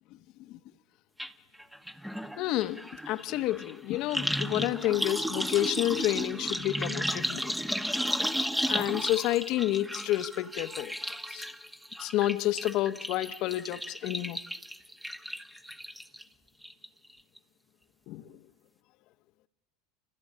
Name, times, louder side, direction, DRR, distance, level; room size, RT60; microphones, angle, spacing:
sound 1, 1.2-1.3 1.6-16.2 16.6-17.1 17.4-17.5, equal, 5° right, 1.3 m, -34 dB
voice 1, 2.4-7.5 8.7-10.9 11.3-11.5 12.0-14.4 18.1-18.4, left 15 dB, 55° left, 1.1 m, -30 dB
29.5 x 26.5 x 7.6 m
hypercardioid pair, 80°, 0 cm